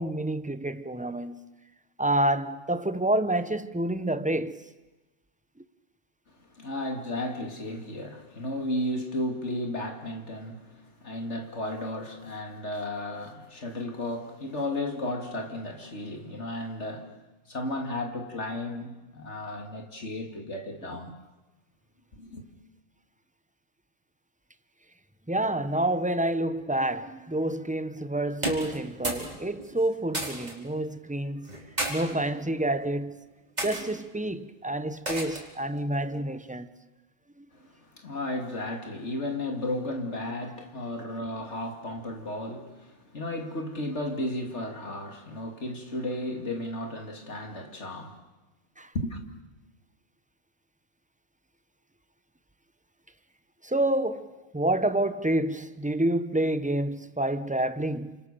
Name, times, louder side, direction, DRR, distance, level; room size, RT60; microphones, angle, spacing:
voice 1, 0.0-1.4 2.0-4.6 25.3-31.5 31.9-33.1 33.6-36.7 48.8-48.9 53.6-58.2, right 1 dB, 10° right, 0.6 m, -28 dB
voice 2, 6.3-17.2 17.5-21.1 22.1-22.4 37.5-48.2 48.9-49.2, left 1 dB, 50° left, 2.9 m, -34 dB
sound 1, 28.3-29.3 29.6-30.5 31.4-31.9 32.7-33.0 33.6-33.8 35.1-35.5, right 1 dB, 30° right, 4.4 m, -32 dB
29.5 x 26.5 x 6.9 m
omnidirectional pair, 1.5 m